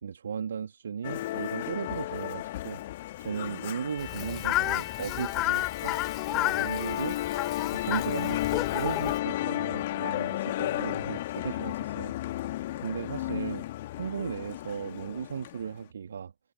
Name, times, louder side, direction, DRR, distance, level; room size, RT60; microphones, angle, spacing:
voice 1, 0.0-2.8 3.2-6.0 6.3-7.2 7.6-12.1 12.8-13.6 13.9-16.3, right 7 dB, 70° right, 2.7 m, -36 dB
Musical instrument, 1.0-15.7, left 15 dB, 55° left, 2.6 m, -33 dB
Fowl, 4.0-9.2, left 17 dB, 35° left, 4.3 m, -31 dB
figure-of-eight pair, 90°, 0 cm